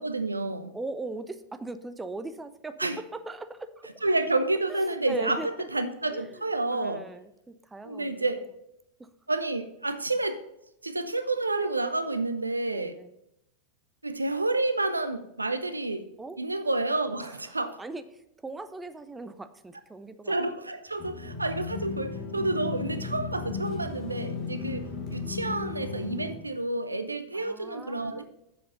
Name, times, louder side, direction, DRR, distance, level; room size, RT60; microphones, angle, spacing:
voice 1, 0.0-0.7 2.8-3.0 4.0-7.0 7.8-8.4 9.3-10.4 10.8-13.0 14.0-16.0 16.4-17.8 20.2-28.2, right 2 dB, 80° right, 11 dB, 0.6 m, -29 dB
voice 2, 0.7-3.9 4.7-5.7 6.1-6.4 6.7-8.2 9.0-9.1 12.7-13.1 16.2-16.4 17.2-20.3 24.4-24.6 27.3-28.2, right 2 dB, 10° right, 11 dB, 0.6 m, -40 dB
sound 1, 21.0-26.4, left 4 dB, 40° left, 1.9 m, -35 dB
7.3 x 7.1 x 5.5 m, 0.84 s
figure-of-eight pair, 90°, 0 cm